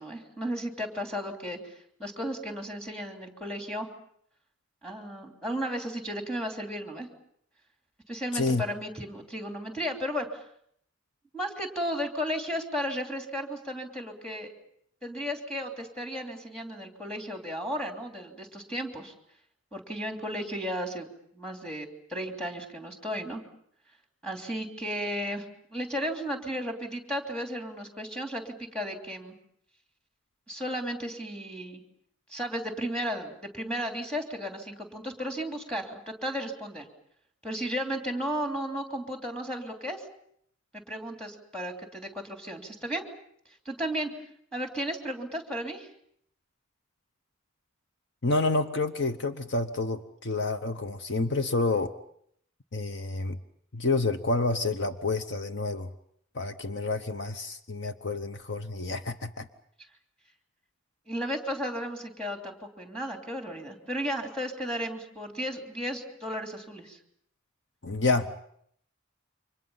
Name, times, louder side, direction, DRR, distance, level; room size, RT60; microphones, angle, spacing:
voice 1, 0.0-3.9 4.8-7.1 8.1-10.4 11.3-14.5 15.0-19.1 19.7-21.1 21.3-23.4 24.2-25.4 25.7-29.4 30.5-31.8 32.3-36.9 37.4-40.0 40.9-43.0 43.6-44.1 44.5-45.9 61.1-67.0, equal, 5° left, 3 dB, 3.1 m, -34 dB
voice 2, 8.3-8.6 48.2-51.9 52.7-53.4 53.7-55.9 56.3-59.5 67.8-68.5, left 3 dB, 60° left, 9 dB, 0.9 m, -29 dB
29.5 x 25.0 x 5.6 m, 0.68 s
head